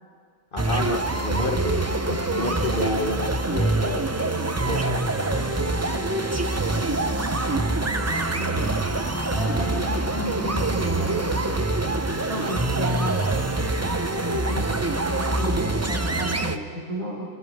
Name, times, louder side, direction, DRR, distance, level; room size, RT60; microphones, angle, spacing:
voice 1, 0.5-4.4 4.6-5.0, left 3 dB, 45° left, 4 dB, 1.1 m, -30 dB
sound 1, 0.6-16.6, right 2 dB, 20° right, 0.4 m, -25 dB
voice 2, 7.5-8.8 9.3-11.5 12.3-13.3 13.9-17.3, right 1 dB, 55° right, -5 dB, 6.7 m, -33 dB
29.0 x 28.0 x 3.6 m, 2.1 s
omnidirectional pair, 1.4 m